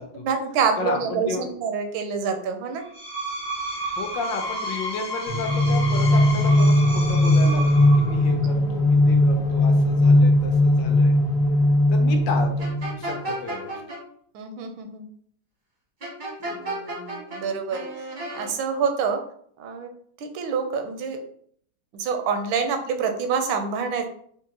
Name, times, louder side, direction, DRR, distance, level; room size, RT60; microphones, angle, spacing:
voice 1, 0.2-2.8 8.5-9.1 14.3-15.1 16.5-18.1 18.3-19.2 19.6-19.9 20.2-21.2 21.9-24.1, right 6 dB, 80° right, 6 dB, 1.3 m, -27 dB
voice 2, 0.8-1.4 4.0-11.2 11.9-12.7 13.0-13.8, left 4 dB, 75° left, 4 dB, 1.2 m, -33 dB
Screech, 2.8-8.3, equal, 35° left, 0.7 m, -32 dB
sound 1, 5.3-13.2, left 1 dB, 55° left, 1.3 m, -19 dB
sound 2, 12.6-14.0 16.0-17.4 17.7-18.5, right 2 dB, 40° right, 0.6 m, -32 dB
4.4 x 2.4 x 2.7 m, 0.62 s
omnidirectional pair, 2.2 m